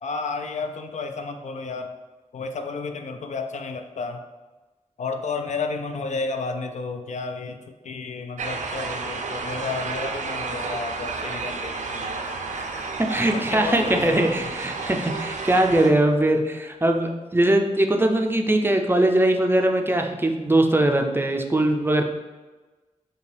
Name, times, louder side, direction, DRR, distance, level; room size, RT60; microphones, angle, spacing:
voice 1, 0.0-1.9 2.3-4.2 5.0-12.2 13.3-14.6, left 4 dB, 70° left, 6 dB, 0.4 m, -32 dB
sound 1, 8.4-15.9, right 4 dB, 75° right, 0.4 m, -31 dB
voice 2, 12.2-22.0, right 1 dB, 15° right, 3 dB, 0.4 m, -21 dB
5.0 x 2.3 x 3.3 m, 1.2 s
wide cardioid pair, 75°, 13 cm